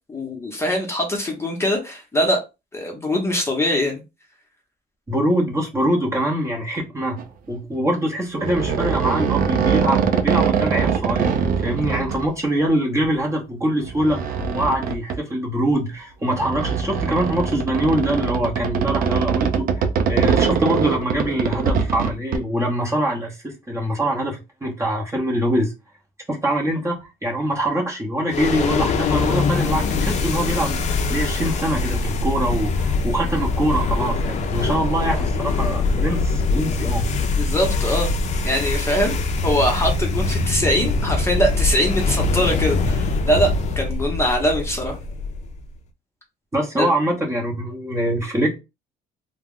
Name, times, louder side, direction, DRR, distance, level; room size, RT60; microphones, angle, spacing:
voice 1, 0.1-2.4 2.7-4.0 35.1-35.2 37.4-38.1 38.4-39.1 39.4-43.5 43.8-44.9 46.8-46.9, equal, 15° left, 0.7 m, -22 dB
voice 2, 5.1-7.2 7.5-25.7 26.3-37.0 46.5-48.6, right 1 dB, 15° right, 0.8 m, -24 dB
sound 1, 7.2-7.3 8.4-12.3 13.0-13.1 13.8-15.2 16.3-22.4, right 6 dB, 55° right, 0.5 m, -22 dB
sound 2, 28.3-45.7, left 3 dB, 45° left, 0.4 m, -23 dB
2.2 x 2.0 x 3.6 m
cardioid pair, 110°, 17 cm